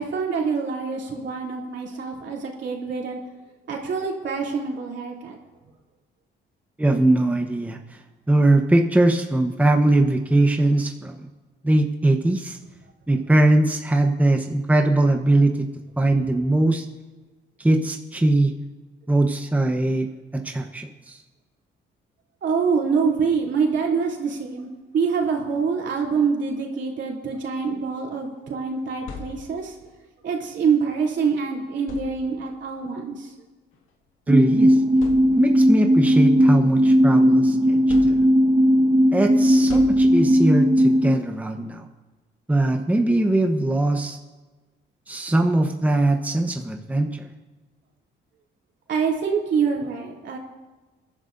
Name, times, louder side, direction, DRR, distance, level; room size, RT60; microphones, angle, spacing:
voice 1, 0.0-3.2 3.7-5.4 22.4-24.7 24.9-29.7 30.2-33.3 37.7-37.8 48.9-50.4, right 5 dB, 65° right, -1 dB, 3.0 m, -25 dB
voice 2, 6.8-7.8 8.3-11.3 11.6-12.6 13.1-15.5 16.0-16.8 17.6-18.5 19.1-21.2 34.3-34.8 35.3-38.2 39.1-41.9 42.5-44.2 45.1-47.3, right 2 dB, 5° right, 3 dB, 1.0 m, -21 dB
sound 1, 28.7-29.9 31.1-31.3 31.8-32.6 33.7-33.9 34.4-34.5 34.9-35.8 36.3-37.3 37.9-38.7 39.7-40.6, left 4 dB, 85° left, 2.0 m, -40 dB
sound 2, 34.3-41.1, equal, 40° right, 1.3 m, -17 dB
24.0 x 11.0 x 2.6 m, 1.2 s
cardioid pair, 90°, 20 cm